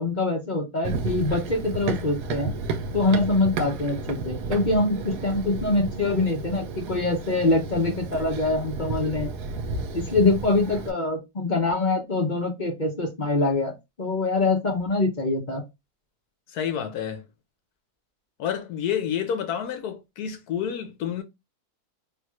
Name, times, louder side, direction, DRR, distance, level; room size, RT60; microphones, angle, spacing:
voice 1, 0.0-2.5 2.9-9.3 9.9-13.7 14.0-15.6, left 2 dB, 40° left, 0.8 m, -24 dB
Run, 0.8-10.9, right 4 dB, 80° right, 1.1 m, -32 dB
voice 2, 16.5-17.3 18.4-21.2, left 8 dB, 75° left, 1.2 m, -29 dB
3.6 x 2.4 x 3.0 m
omnidirectional pair, 1.7 m